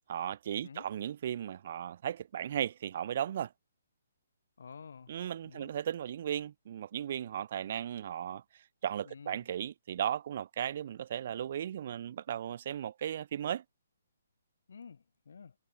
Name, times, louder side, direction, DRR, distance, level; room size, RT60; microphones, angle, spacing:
voice 1, 0.1-3.5 5.1-8.4 8.8-13.6, right 10 dB, 40° right, 0.3 m, -36 dB
voice 2, 4.6-5.2 5.4-5.7 9.0-9.4 14.7-15.5, left 6 dB, 70° left, 0.4 m, -50 dB
hypercardioid pair, 165°, 0 cm